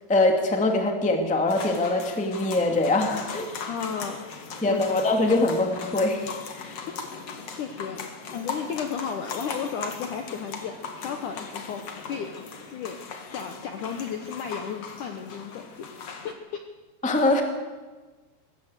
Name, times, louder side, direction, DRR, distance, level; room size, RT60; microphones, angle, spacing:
voice 1, 0.1-3.6 4.6-6.3 6.6-6.8 17.0-17.4, left 2 dB, 5° left, 3 dB, 1.2 m, -23 dB
sound 1, 1.5-16.3, left 5 dB, 45° left, 2.3 m, -39 dB
voice 2, 3.7-4.4 4.7-4.8 7.5-12.3 12.7-13.0 13.3-16.6, left 7 dB, 70° left, 5 dB, 2.0 m, -34 dB
20.5 x 16.5 x 8.1 m, 1.3 s
omnidirectional pair, 4.9 m